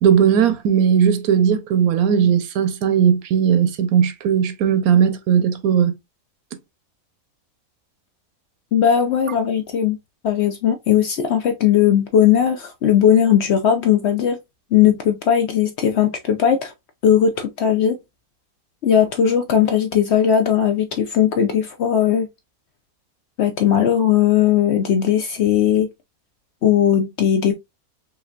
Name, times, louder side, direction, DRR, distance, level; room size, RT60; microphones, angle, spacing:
voice 1, 0.0-5.9, right 8 dB, 80° right, 1.1 m, -17 dB
voice 2, 8.7-10.0 10.2-14.4 14.7-16.7 17.0-18.0 18.8-22.3 23.4-25.9 26.6-27.5, left 9 dB, 65° left, 0.7 m, -18 dB
5.0 x 2.7 x 2.3 m
omnidirectional pair, 1.5 m